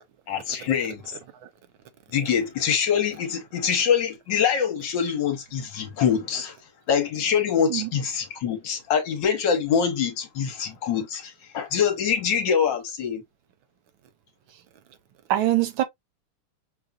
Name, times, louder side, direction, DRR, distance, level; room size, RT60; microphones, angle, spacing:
voice 1, 0.3-1.0 2.1-6.5 6.9-13.2, left 7 dB, 60° left, 1.5 m, -24 dB
voice 2, 15.3-15.8, right 13 dB, 75° right, 1.4 m, -24 dB
5.5 x 2.5 x 2.3 m
omnidirectional pair, 2.4 m